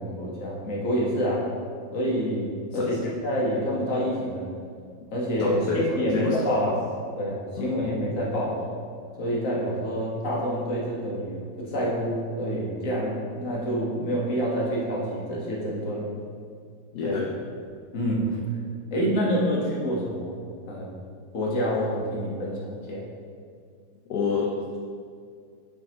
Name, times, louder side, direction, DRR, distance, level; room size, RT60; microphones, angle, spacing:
voice 1, 0.0-1.4 1.9-2.5 2.7-3.0 3.2-4.5 5.1-6.8 7.2-8.6 9.2-12.1 12.4-16.1 17.0-17.2 17.9-18.4 18.9-20.4 20.7-20.9 21.3-23.0, equal, 50° left, -4 dB, 1.6 m, -27 dB
voice 2, 2.7-3.1 5.4-5.8 6.1-6.6 7.6-8.0 16.9-17.3 24.1-24.8, left 5 dB, 70° left, -3 dB, 1.2 m, -29 dB
8.4 x 4.7 x 2.9 m, 2.2 s
omnidirectional pair, 1.9 m